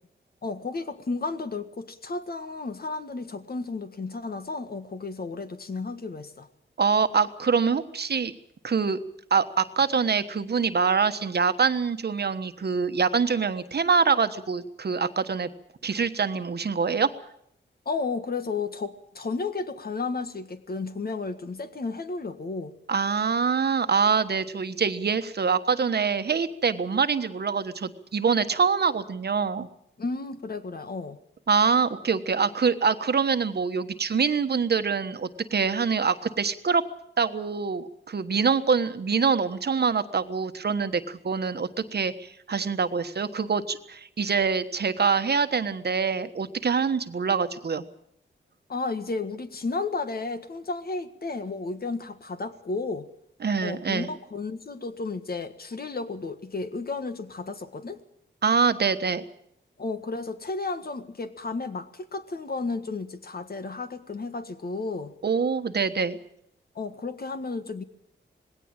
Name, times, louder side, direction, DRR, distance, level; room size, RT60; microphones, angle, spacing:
voice 1, 0.4-6.5 17.8-22.7 30.0-31.2 48.7-53.1 53.6-58.0 59.8-65.1 66.7-67.8, left 3 dB, 50° left, 9 dB, 1.7 m, -33 dB
voice 2, 6.8-8.3 8.6-9.0 9.3-15.5 15.8-17.1 22.9-29.7 31.5-36.8 37.2-47.8 53.4-54.1 58.4-59.2 65.2-66.2, right 5 dB, 55° right, 10 dB, 1.3 m, -25 dB
19.5 x 17.0 x 8.9 m, 0.73 s
wide cardioid pair, 95°, 20 cm